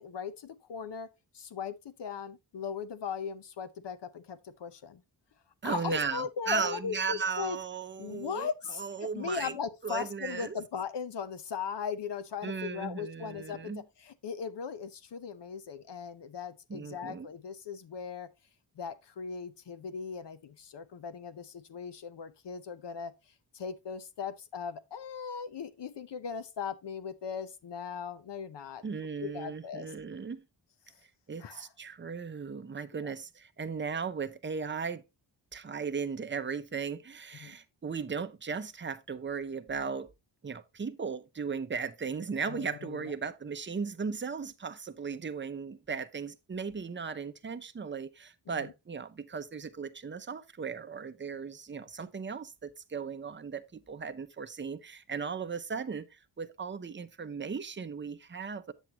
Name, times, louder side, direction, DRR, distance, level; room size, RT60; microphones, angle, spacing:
voice 1, 0.0-5.0 5.6-7.6 8.0-18.3 18.8-23.1 23.5-29.9 31.4-31.7 32.9-33.1 37.4-37.6 42.5-43.1 48.5-48.7, left 6 dB, 65° left, 0.8 m, -38 dB
voice 2, 5.6-9.5 9.8-10.6 12.4-13.8 16.7-17.3 28.8-30.4 31.3-35.0 35.5-40.1 40.4-58.7, right 5 dB, 25° right, 0.7 m, -37 dB
8.2 x 7.4 x 2.9 m
wide cardioid pair, 90°, 45 cm